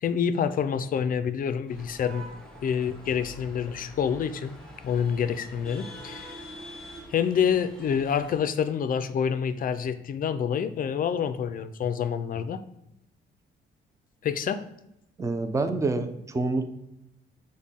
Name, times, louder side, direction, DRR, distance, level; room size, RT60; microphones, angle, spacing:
voice 1, 0.0-2.3 2.6-4.5 4.8-6.3 7.1-12.6 14.2-14.7, left 7 dB, 45° left, 11 dB, 0.4 m, -27 dB
sound 1, 1.7-8.4, equal, 5° left, 1.0 m, -45 dB
voice 2, 15.2-16.7, right 3 dB, 15° right, 9 dB, 0.4 m, -27 dB
6.3 x 2.2 x 3.6 m, 0.86 s
cardioid pair, 90°, 20 cm